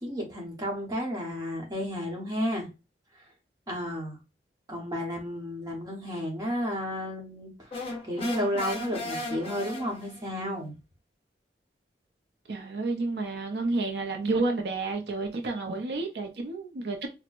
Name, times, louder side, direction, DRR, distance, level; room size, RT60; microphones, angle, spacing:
voice 1, 0.0-2.7 3.7-4.2 4.7-7.7 8.0-10.7 12.5-12.6, equal, 20° right, 1.0 m, -32 dB
sound 1, 7.7-10.3, left 2 dB, 35° left, 0.8 m, -36 dB
voice 2, 12.5-17.1, right 3 dB, 70° right, 0.5 m, -30 dB
4.3 x 2.1 x 2.4 m
head